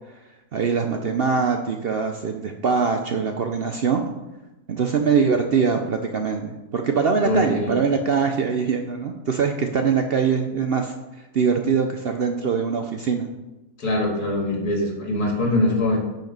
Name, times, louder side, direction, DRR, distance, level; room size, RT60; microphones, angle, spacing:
voice 1, 0.5-4.0 4.7-10.9 11.3-13.3, right 5 dB, 60° right, 4 dB, 0.6 m, -22 dB
voice 2, 7.2-7.7 13.8-16.0, left 1 dB, 85° left, 1 dB, 2.3 m, -23 dB
8.9 x 5.2 x 5.2 m, 1.0 s
omnidirectional pair, 1.6 m